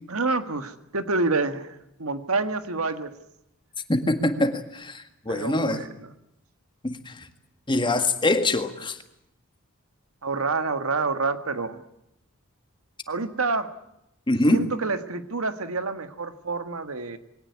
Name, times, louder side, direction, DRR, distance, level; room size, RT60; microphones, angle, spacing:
voice 1, 0.1-3.1 5.3-6.1 10.2-11.8 13.1-13.7 14.5-17.2, right 3 dB, 80° right, 1.7 m, -28 dB
voice 2, 3.9-5.8 6.8-7.2 7.7-9.0 14.3-14.7, left 2 dB, 20° left, 1.8 m, -24 dB
22.5 x 18.0 x 9.7 m
head